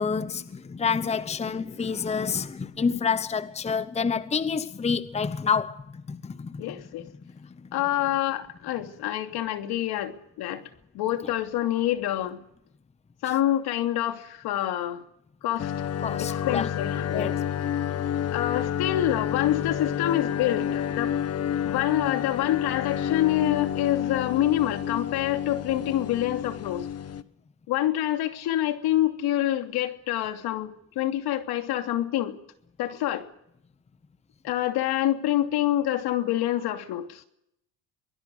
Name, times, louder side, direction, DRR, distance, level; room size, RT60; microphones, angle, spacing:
voice 1, 0.0-6.6 16.0-16.7 17.1-17.3, left 6 dB, 15° left, 0.9 m, -28 dB
voice 2, 6.6-7.0 7.7-10.6 10.9-12.4 13.2-15.0 15.4-15.7 16.2-17.4 18.3-21.1 21.6-26.9 27.7-32.4 32.8-33.3 34.4-37.2, left 13 dB, 70° left, 3.0 m, -27 dB
sound 1, 15.6-27.2, left 9 dB, 40° left, 1.3 m, -30 dB
24.0 x 20.5 x 6.5 m
cardioid pair, 105°, 39 cm